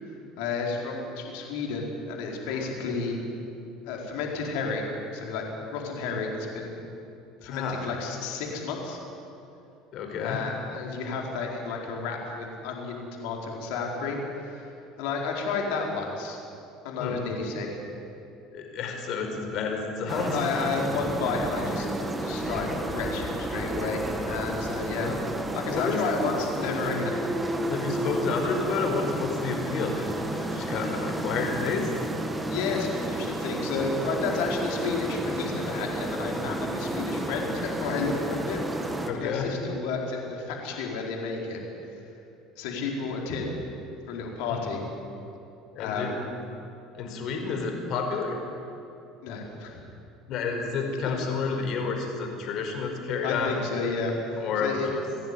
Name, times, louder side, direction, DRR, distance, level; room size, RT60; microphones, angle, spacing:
voice 1, 0.4-3.2 3.8-5.4 5.7-6.8 7.4-9.0 10.2-14.7 15.0-16.4 16.8-17.8 20.3-21.9 22.2-25.1 25.5-27.1 32.5-38.6 38.9-41.6 42.6-43.5 44.1-44.8 45.8-46.2 49.2-49.8 51.0-51.2 53.2-54.9, left 4 dB, 80° left, 0 dB, 4.5 m, -31 dB
voice 2, 7.4-7.9 9.9-10.4 17.0-17.2 18.5-20.4 25.0-25.2 25.7-26.0 27.7-31.9 39.1-39.5 44.5-44.6 45.7-46.2 47.0-48.4 50.3-53.6 54.3-55.0, left 5 dB, 60° left, 3 dB, 4.9 m, -30 dB
sound 1, 20.1-39.1, right 1 dB, 10° right, 2.1 m, -31 dB
30.0 x 11.0 x 10.0 m, 2.7 s
supercardioid pair, 110°, 0 cm